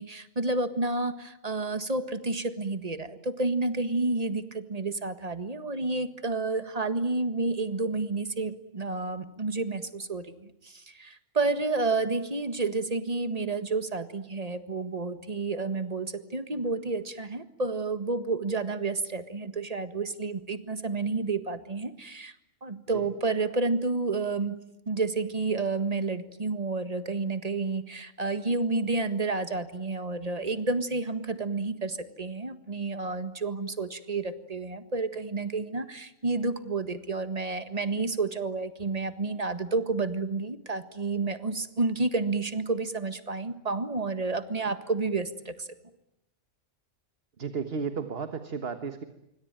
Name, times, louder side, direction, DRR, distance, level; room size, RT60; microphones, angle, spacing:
voice 1, 0.0-22.3 22.6-24.6 24.9-45.7, right 3 dB, 30° right, 10 dB, 1.8 m, -30 dB
voice 2, 47.4-49.0, right 5 dB, 55° right, 9 dB, 1.7 m, -33 dB
26.5 x 24.5 x 9.1 m, 0.84 s
omnidirectional pair, 1.3 m